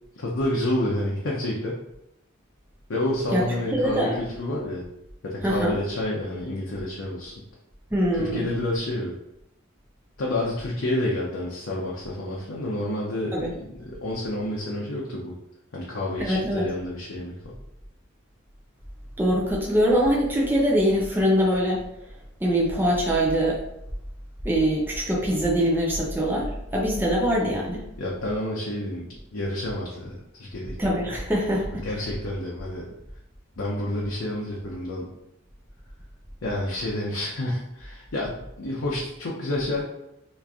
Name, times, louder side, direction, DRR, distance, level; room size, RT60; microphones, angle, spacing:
voice 1, 0.1-1.8 2.9-4.8 5.2-7.3 8.2-9.1 10.2-15.3 15.7-17.5 28.0-29.1 29.3-30.7 31.8-32.9 33.6-35.1 36.4-39.8, left 1 dB, 75° left, -4 dB, 0.6 m, -29 dB
voice 2, 3.7-4.2 5.4-5.7 7.9-8.5 13.3-13.5 16.2-16.6 19.2-21.8 22.4-23.6 24.4-27.8 30.8-31.8, equal, 10° right, -3 dB, 0.4 m, -23 dB
3.0 x 2.5 x 3.5 m, 0.85 s
head